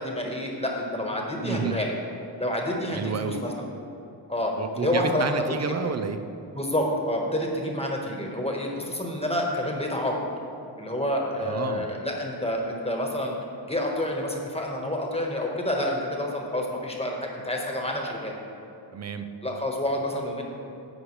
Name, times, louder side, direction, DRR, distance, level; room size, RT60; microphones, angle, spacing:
voice 1, 0.0-1.9 2.4-3.7 4.3-4.5 4.8-5.4 6.5-10.3 10.8-13.4 13.6-18.3 19.4-20.4, left 1 dB, 15° left, 0 dB, 1.3 m, -28 dB
voice 2, 1.4-1.8 2.9-3.4 4.6-6.2 11.4-11.9 18.9-19.3, right 5 dB, 35° right, 8 dB, 0.5 m, -30 dB
11.0 x 8.0 x 3.2 m, 2.9 s
wide cardioid pair, 115°, 44 cm